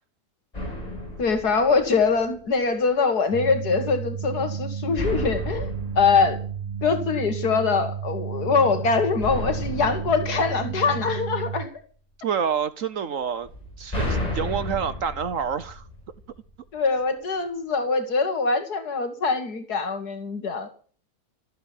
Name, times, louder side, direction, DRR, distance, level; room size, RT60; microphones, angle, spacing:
sound 1, 0.5-2.4 5.0-7.4 9.2-11.5 13.4-16.5, left 1 dB, 25° left, 5.4 m, -33 dB
voice 1, 1.2-6.4 6.8-11.7 16.7-20.7, left 4 dB, 75° left, 2.2 m, -23 dB
sound 2, 3.3-11.7, right 7 dB, 40° right, 0.5 m, -32 dB
voice 2, 12.2-13.5 13.8-15.8, right 7 dB, 60° right, 1.2 m, -27 dB
14.0 x 8.4 x 9.9 m
omnidirectional pair, 1.7 m